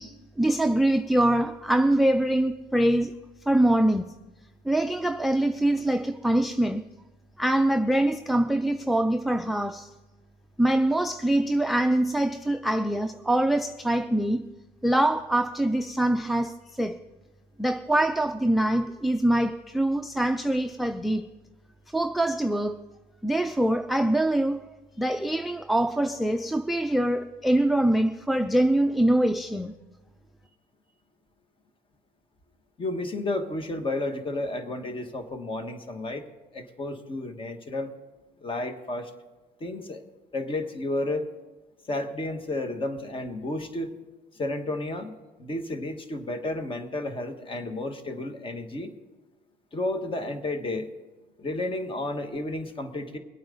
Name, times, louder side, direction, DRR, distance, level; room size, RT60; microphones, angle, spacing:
voice 1, 0.0-3.2 3.5-4.1 4.7-6.8 7.4-9.9 10.6-14.5 14.8-17.0 17.6-21.3 21.9-22.8 23.2-24.6 25.0-29.7, right 1 dB, ahead, 0.4 m, -24 dB
voice 2, 32.8-36.3 36.5-37.9 38.4-39.1 39.6-40.0 40.3-41.3 41.9-44.0 44.3-48.9 49.7-50.9 51.4-53.2, left 2 dB, 30° left, 1.4 m, -32 dB
21.5 x 8.8 x 3.9 m
cardioid pair, 110°, 17 cm